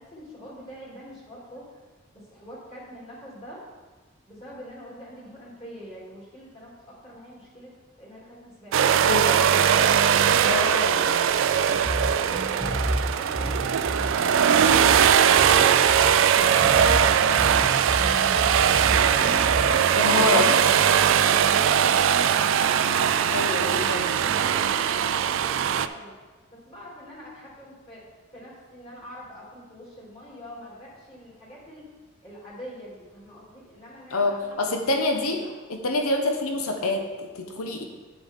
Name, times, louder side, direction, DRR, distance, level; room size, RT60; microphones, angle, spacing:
voice 1, 0.0-1.8 2.3-3.7 4.3-7.7 8.0-8.8 9.8-14.9 15.4-18.7 19.2-22.1 22.6-25.0 25.3-26.1 26.5-28.0 28.3-31.9 32.2-35.1 35.4-35.6, equal, 30° left, -6 dB, 2.7 m, -42 dB
sound 1, 8.7-25.9, right 8 dB, 60° right, 0.3 m, -20 dB
voice 2, 10.5-10.9 20.0-20.6 23.3-24.2 34.1-35.4 35.7-37.8, left 2 dB, 85° left, 4 dB, 0.9 m, -26 dB
sound 2, 11.9-19.9, equal, 5° right, 1.5 m, -31 dB
9.4 x 7.0 x 3.6 m, 1.3 s
head